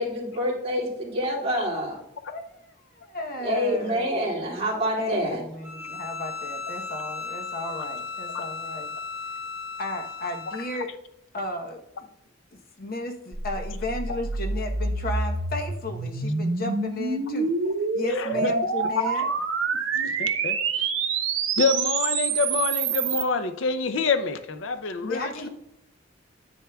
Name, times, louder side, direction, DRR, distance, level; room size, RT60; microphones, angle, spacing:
voice 1, 0.0-2.0 3.4-5.4, equal, 30° right, -5 dB, 2.4 m, -27 dB
voice 2, 2.3-4.3 4.9-8.9 9.8-10.9 11.3-12.1 12.5-17.5 17.9-19.3 19.7-19.8 25.0-25.5, left 2 dB, 50° left, 3 dB, 0.9 m, -34 dB
Bowed string instrument, 5.6-10.9, left 4 dB, 10° right, 1.1 m, -36 dB
sound 1, 13.3-23.2, right 4 dB, 80° right, 0.9 m, -27 dB
voice 3, 18.2-18.5 19.9-20.9 21.6-25.5, left 4 dB, 70° left, 10 dB, 0.5 m, -27 dB
9.9 x 8.1 x 2.3 m, 0.81 s
head